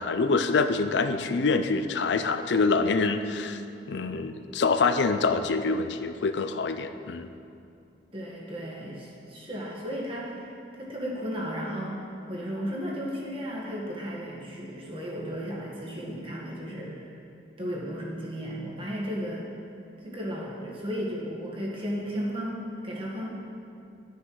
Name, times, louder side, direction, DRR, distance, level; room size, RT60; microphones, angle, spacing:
voice 1, 0.0-3.6 3.9-7.3, left 4 dB, 75° left, 9 dB, 0.5 m, -25 dB
voice 2, 8.1-17.2 17.6-19.5 20.0-23.3, equal, 30° right, -4 dB, 1.7 m, -34 dB
12.0 x 6.5 x 4.8 m, 2.6 s
head